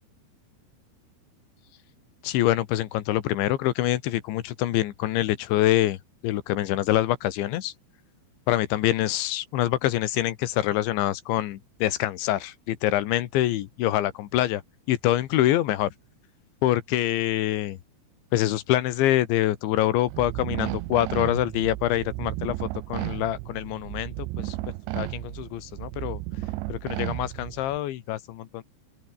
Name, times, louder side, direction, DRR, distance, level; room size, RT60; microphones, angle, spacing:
voice 1, 2.2-6.0 6.2-7.7 8.5-14.6 14.9-15.9 16.6-17.8 18.3-24.6 25.0-26.2 26.7-28.6, left 14 dB, 80° left, 3.7 m, -25 dB
sound 1, 20.1-27.8, right 19 dB, 80° right, 3.0 m, -33 dB
open air
omnidirectional pair, 5.4 m